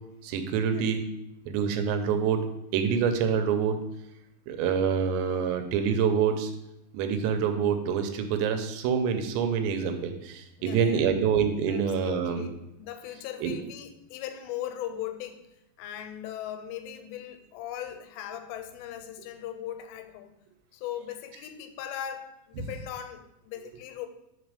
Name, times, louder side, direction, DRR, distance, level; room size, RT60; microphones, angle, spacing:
voice 1, 0.2-1.0 1.5-2.5 2.7-3.8 4.5-6.5 6.9-12.5 13.4-13.5, right 7 dB, 85° right, 7 dB, 2.9 m, -26 dB
voice 2, 10.6-11.1 11.7-12.5 12.8-15.5 15.8-20.3 20.7-24.1, left 11 dB, 85° left, 8 dB, 2.8 m, -39 dB
5.0 x 4.9 x 4.8 m, 0.86 s
omnidirectional pair, 5.0 m